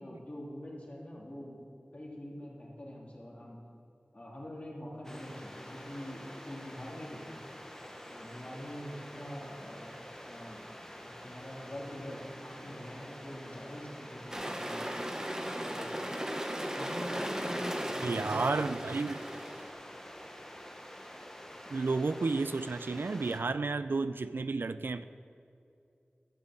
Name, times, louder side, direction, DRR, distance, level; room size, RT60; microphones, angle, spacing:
voice 1, 0.0-1.6 1.9-3.6 4.1-7.4 8.1-9.9 10.2-10.6 11.0-15.0 15.6-15.9 16.7-18.8, equal, 35° left, -4 dB, 3.1 m, -44 dB
sound 1, 5.0-23.4, equal, 10° left, 1.1 m, -48 dB
sound 2, 14.3-19.7, equal, 15° right, 1.0 m, -37 dB
voice 2, 18.0-19.2 21.7-25.0, right 3 dB, 80° right, 13 dB, 0.4 m, -32 dB
13.0 x 5.5 x 7.5 m, 2.6 s
wide cardioid pair, 45°, 4 cm